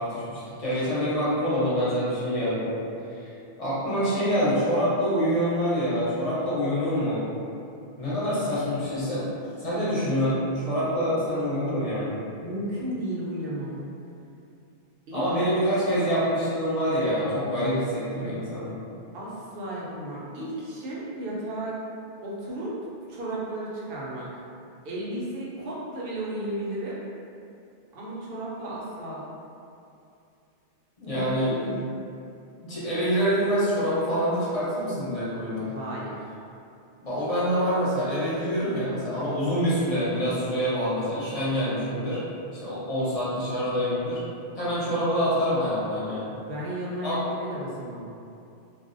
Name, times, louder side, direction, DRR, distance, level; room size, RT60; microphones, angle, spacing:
voice 1, 0.0-2.7 3.1-3.3 3.6-7.2 8.0-9.2 9.6-12.2 15.1-18.8 31.0-31.5 32.6-35.8 37.0-42.2 42.6-44.2 44.5-46.4 47.0-47.2, equal, 40° left, -10 dB, 0.8 m, -26 dB
voice 2, 12.4-13.8 15.1-15.3 19.1-21.7 22.2-22.8 23.1-24.4 24.8-27.0 27.9-29.2 31.1-31.8 35.7-36.2 46.3-48.0, right 1 dB, 70° right, -6 dB, 0.8 m, -34 dB
2.4 x 2.0 x 2.5 m, 2.6 s
omnidirectional pair, 1.0 m